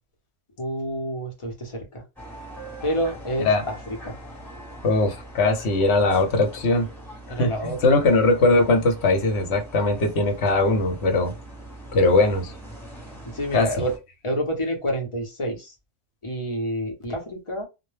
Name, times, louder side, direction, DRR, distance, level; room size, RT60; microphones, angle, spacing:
voice 1, 0.6-2.0 2.8-3.8 4.0-4.2 7.3-7.9 13.3-13.9 14.2-15.7 16.2-17.7, equal, 30° left, 0.7 m, -28 dB
sound 1, 2.2-14.0, right 1 dB, ahead, 0.9 m, -42 dB
voice 2, 4.8-6.9 7.4-11.3 11.9-12.5 13.5-13.7, left 2 dB, 70° left, 1.0 m, -20 dB
2.2 x 2.1 x 3.1 m
omnidirectional pair, 1.2 m